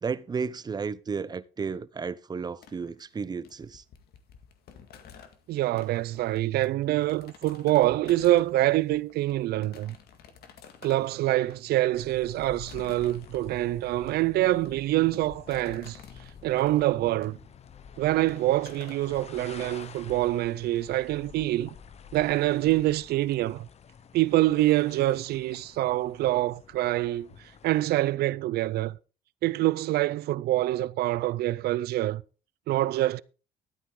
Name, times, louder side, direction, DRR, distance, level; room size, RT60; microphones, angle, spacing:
voice 1, 0.0-3.8, right 5 dB, 25° right, 0.6 m, -33 dB
sound 1, 2.6-19.9, left 7 dB, 70° left, 2.0 m, -53 dB
voice 2, 5.5-10.0 10.8-16.0 16.4-17.4 18.0-21.7 22.1-23.7 24.1-27.3 27.6-29.0 29.4-32.2 32.7-33.2, right 16 dB, 70° right, 0.5 m, -25 dB
sound 2, 11.9-27.8, left 7 dB, 40° left, 0.9 m, -49 dB
12.5 x 9.1 x 3.8 m
cardioid pair, 110°, 17 cm